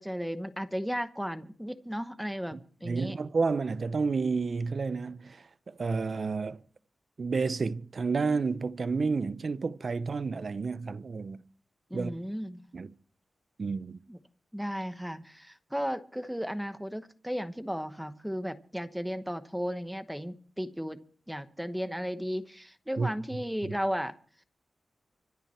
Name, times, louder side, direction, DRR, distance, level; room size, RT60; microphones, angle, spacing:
voice 1, 0.0-3.2 11.9-12.6 14.1-14.2 14.5-24.1, equal, ahead, 1.0 m, -35 dB
voice 2, 2.8-6.6 7.2-11.4 11.9-12.1 12.7-12.9 13.6-14.0 23.0-23.1 23.6-23.8, right 4 dB, 45° right, 0.8 m, -30 dB
25.5 x 9.2 x 4.4 m
wide cardioid pair, 140°, 0 cm